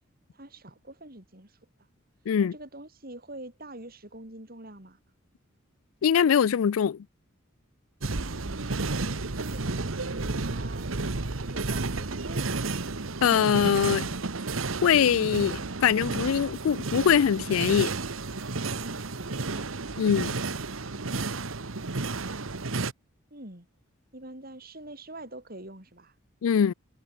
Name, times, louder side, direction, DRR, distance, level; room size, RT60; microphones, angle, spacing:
voice 1, 0.3-1.9 2.4-5.0 8.4-10.9 11.2-12.7 18.4-19.7 23.3-23.7 24.1-26.2, right 1 dB, 45° right, 7.5 m, -46 dB
voice 2, 6.0-7.0 13.2-14.1 14.8-17.9 20.0-20.4 26.4-26.7, left 8 dB, 90° left, 0.4 m, -23 dB
sound 1, 8.0-22.9, right 3 dB, 80° right, 1.4 m, -32 dB
head